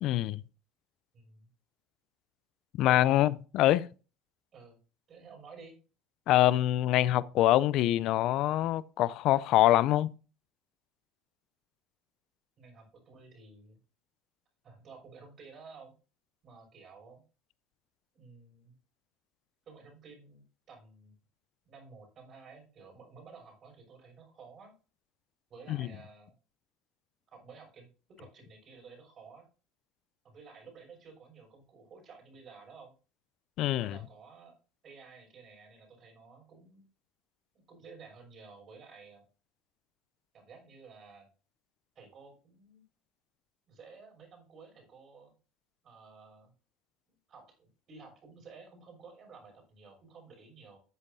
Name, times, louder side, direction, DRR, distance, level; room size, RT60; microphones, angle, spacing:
voice 1, 0.0-0.4 2.8-3.8 6.3-10.1 25.7-25.9 33.6-34.0, left 14 dB, 60° left, 0.5 m, -25 dB
voice 2, 1.1-1.5 2.8-3.4 4.5-4.8 5.1-5.7 12.6-13.8 14.6-15.9 16.4-17.2 18.1-18.8 19.7-21.1 21.6-24.7 25.5-26.3 27.3-29.5 30.2-32.9 33.8-34.5 34.8-36.8 37.5-39.2 40.3-41.3 41.9-42.8 43.7-45.3 45.8-46.5 47.1-50.8, right 4 dB, 45° right, 6.1 m, -53 dB
14.0 x 8.1 x 2.7 m
hypercardioid pair, 75°, 0 cm